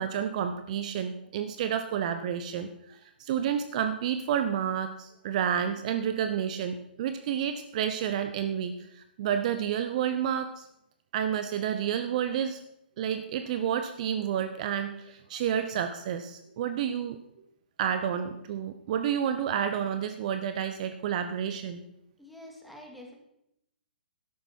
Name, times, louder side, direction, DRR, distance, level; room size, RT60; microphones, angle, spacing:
voice 1, 0.0-10.6 11.1-12.6 13.0-17.2 17.8-21.8, right 9 dB, 45° right, 9 dB, 0.8 m, -30 dB
voice 2, 22.2-23.1, left 1 dB, ahead, 0 dB, 2.5 m, -47 dB
12.5 x 11.0 x 4.6 m, 0.80 s
figure-of-eight pair, 125°, 5 cm